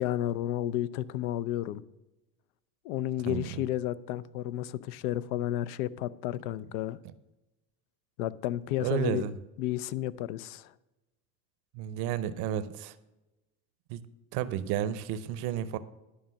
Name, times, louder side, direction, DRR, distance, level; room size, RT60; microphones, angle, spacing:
voice 1, 0.0-1.8 2.8-7.0 8.2-9.2 9.6-10.7, left 13 dB, 80° left, 0.6 m, -32 dB
voice 2, 3.3-3.6 8.8-9.3 11.7-12.9 13.9-14.0 14.3-15.8, right 10 dB, 65° right, 0.7 m, -32 dB
10.0 x 5.3 x 6.3 m
supercardioid pair, 105°, 43 cm